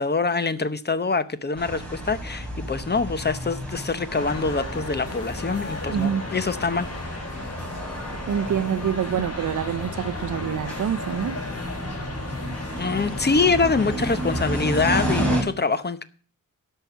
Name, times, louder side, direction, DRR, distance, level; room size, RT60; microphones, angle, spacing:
voice 1, 0.0-6.9 12.8-16.0, left 4 dB, 30° left, 0.8 m, -25 dB
sound 1, 1.6-15.4, right 1 dB, 5° left, 4.0 m, -32 dB
sound 2, 4.1-15.2, left 2 dB, 50° left, 3.7 m, -36 dB
voice 2, 5.9-6.2 8.3-11.4, right 9 dB, 70° right, 0.6 m, -26 dB
13.0 x 5.6 x 8.0 m
wide cardioid pair, 155°, 32 cm